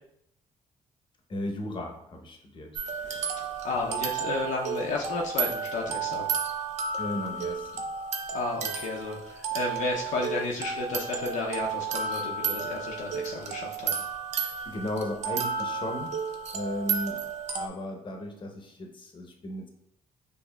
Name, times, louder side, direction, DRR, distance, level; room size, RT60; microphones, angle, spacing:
voice 1, 1.3-2.8 7.0-7.8 14.7-16.2 16.5-17.2 17.5-19.7, left 1 dB, 40° left, 2 dB, 0.7 m, -35 dB
sound 1, 2.7-17.7, right 6 dB, 60° right, 0.5 m, -32 dB
voice 2, 3.6-6.3 8.3-14.0, left 3 dB, 70° left, -1 dB, 0.5 m, -32 dB
4.4 x 2.6 x 2.2 m, 0.74 s
supercardioid pair, 75°, 13 cm